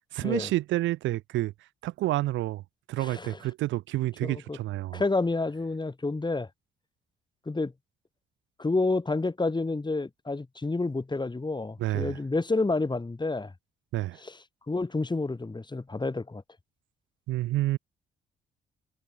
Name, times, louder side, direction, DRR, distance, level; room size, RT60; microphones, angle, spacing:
voice 1, 0.1-1.5 1.8-2.6 2.9-5.0 11.8-12.2 13.9-14.2 17.3-17.8, right 16 dB, 75° right, 1.1 m, -29 dB
voice 2, 3.0-3.4 4.2-4.6 4.9-6.5 7.5-7.7 8.6-13.5 14.2-14.4 14.7-16.4, left 3 dB, 20° left, 3.5 m, -29 dB
hypercardioid pair, 55°, 20 cm